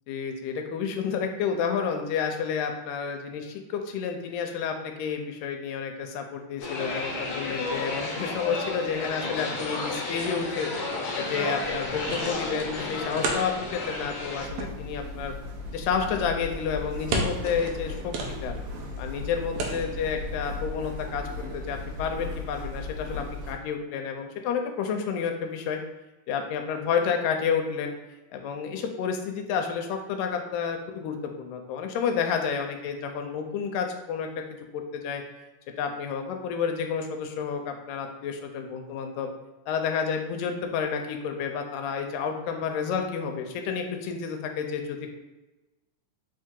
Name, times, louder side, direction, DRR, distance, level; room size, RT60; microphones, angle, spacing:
voice 1, 0.1-10.7 11.2-15.3 15.7-18.1 18.4-18.5 19.0-21.3 21.5-25.8 26.3-27.9 28.3-34.3 34.7-35.2 35.8-39.3 39.7-45.1, left 6 dB, 85° left, 4 dB, 2.2 m, -30 dB
sound 1, 6.6-14.5, left 2 dB, 70° left, 1.9 m, -32 dB
sound 2, 11.6-22.5, right 2 dB, 85° right, 1.5 m, -37 dB
sound 3, 14.4-23.5, left 2 dB, 50° right, 2.2 m, -37 dB
5.1 x 2.7 x 3.6 m, 1.1 s
omnidirectional pair, 3.8 m